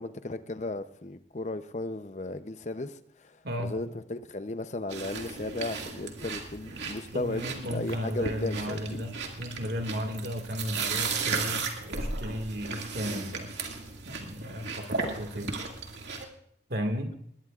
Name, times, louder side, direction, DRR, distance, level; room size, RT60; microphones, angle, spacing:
voice 1, 0.0-9.0, left 2 dB, 40° left, 11 dB, 0.7 m, -35 dB
voice 2, 3.4-3.7 7.1-13.5 14.0-15.6 16.2-16.3 16.7-17.2, equal, 60° right, 5 dB, 1.8 m, -35 dB
sound 1, 4.9-16.2, right 4 dB, 80° right, 2.2 m, -35 dB
21.0 x 18.5 x 2.5 m, 0.68 s
head